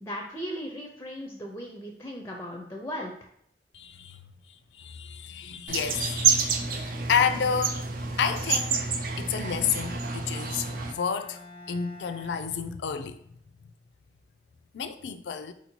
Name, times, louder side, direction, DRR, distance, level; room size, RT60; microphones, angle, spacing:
voice 1, 0.0-3.1, equal, 15° left, 0.5 m, -37 dB
voice 2, 3.7-4.2 4.8-7.8 8.2-8.8 9.2-11.4 11.7-13.2 14.7-15.5, left 6 dB, 80° left, 0.4 m, -30 dB
sound 1, 5.7-10.9, right 5 dB, 55° right, 0.5 m, -28 dB
Bowed string instrument, 9.2-13.3, left 2 dB, 35° right, 0.9 m, -50 dB
4.3 x 2.7 x 4.4 m
head